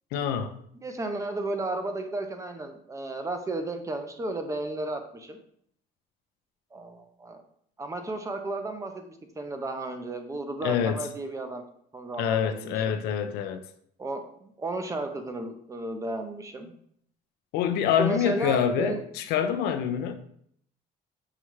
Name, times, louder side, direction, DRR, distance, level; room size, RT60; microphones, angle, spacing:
voice 1, 0.1-0.6 10.6-11.0 12.2-13.6 17.5-20.1, left 8 dB, 80° left, 9 dB, 0.4 m, -26 dB
voice 2, 0.8-5.4 6.7-7.4 7.8-11.6 11.9-13.0 14.0-16.7 18.0-19.1, right 2 dB, 20° right, 6 dB, 0.5 m, -33 dB
5.5 x 2.3 x 3.0 m, 0.68 s
cardioid pair, 115°, 17 cm